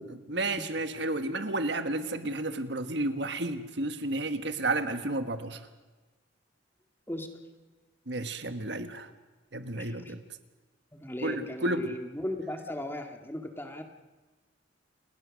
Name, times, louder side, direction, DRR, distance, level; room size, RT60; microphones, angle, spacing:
voice 1, 0.3-5.6 8.1-9.1 9.5-10.2 11.2-11.9, right 2 dB, 60° right, 9 dB, 1.6 m, -31 dB
voice 2, 9.7-10.1 10.9-13.8, left 1 dB, 10° left, 4 dB, 2.1 m, -37 dB
29.0 x 20.0 x 6.5 m, 1.2 s
head